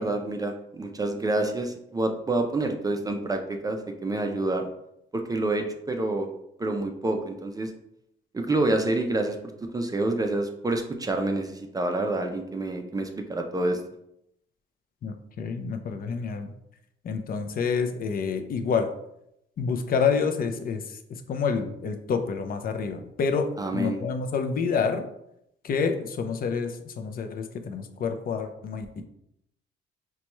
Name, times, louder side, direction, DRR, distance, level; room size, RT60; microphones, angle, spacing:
voice 1, 0.0-4.7 5.1-6.3 6.6-7.7 8.3-13.8 23.6-24.0, right 2 dB, 20° right, 4 dB, 0.4 m, -28 dB
voice 2, 15.0-16.5 17.0-18.9 19.6-21.0 21.3-25.0 25.6-29.0, left 5 dB, 45° left, 6 dB, 0.5 m, -28 dB
4.1 x 2.2 x 3.0 m, 0.79 s
cardioid pair, 90°, 20 cm